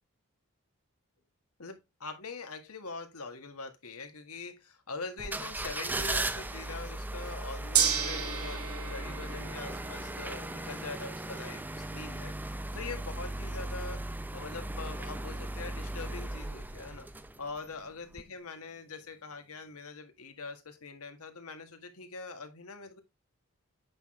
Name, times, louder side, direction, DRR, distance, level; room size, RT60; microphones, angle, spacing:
voice 1, 1.6-12.4 12.7-14.0 14.3-17.1 17.4-23.0, left 4 dB, 75° left, 1.8 m, -43 dB
sound 1, 5.2-17.7 18.1-18.2, right 1 dB, 10° right, 0.5 m, -37 dB
Gong, 7.7-18.0, right 7 dB, 70° right, 1.9 m, -37 dB
8.9 x 5.9 x 3.1 m
head